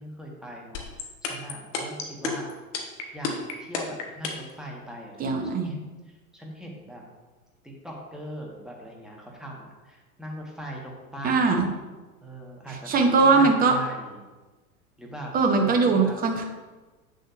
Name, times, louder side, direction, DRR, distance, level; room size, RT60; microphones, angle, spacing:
voice 1, 0.0-2.5 3.1-5.8 6.1-7.0 7.6-11.6 12.2-14.3 15.0-15.3 15.6-16.2, right 1 dB, ahead, -2 dB, 1.5 m, -40 dB
sound 1, 0.7-4.5, left 7 dB, 55° left, 1.3 m, -30 dB
voice 2, 5.2-5.7 11.2-11.7 12.9-13.7 15.3-16.4, right 4 dB, 20° right, 3 dB, 0.9 m, -20 dB
8.1 x 6.4 x 2.6 m, 1.2 s
figure-of-eight pair, 90°, 45 cm